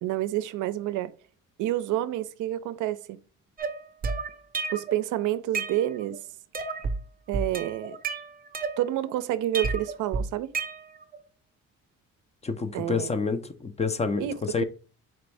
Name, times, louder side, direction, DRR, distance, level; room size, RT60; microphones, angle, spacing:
voice 1, 0.0-1.1 1.6-3.2 4.7-6.2 7.3-8.0 8.8-10.5 12.7-13.1 14.2-14.6, right 13 dB, 80° right, 0.5 m, -29 dB
sound 1, 3.6-5.0 5.3-6.2 6.5-7.0 7.3-9.1 9.5-11.2, right 4 dB, 30° right, 0.6 m, -31 dB
voice 2, 12.4-14.6, left 4 dB, 20° left, 0.4 m, -28 dB
4.3 x 2.5 x 3.3 m
cardioid pair, 90°, 30 cm